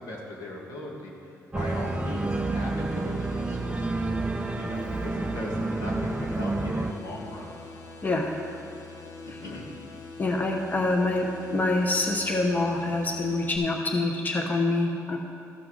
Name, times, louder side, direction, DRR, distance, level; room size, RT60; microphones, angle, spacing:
voice 1, 0.0-4.1 4.5-7.5 9.4-9.7, left 1 dB, 80° left, -3 dB, 2.1 m, -38 dB
Organ, 1.5-6.9, right 2 dB, 15° right, 0.5 m, -29 dB
sound 1, 1.6-13.6, left 4 dB, 65° left, 1.0 m, -44 dB
voice 2, 8.0-8.3 10.2-15.2, left 2 dB, 30° left, 1 dB, 0.9 m, -26 dB
13.5 x 5.9 x 4.8 m, 2.5 s
cardioid pair, 80°, 6 cm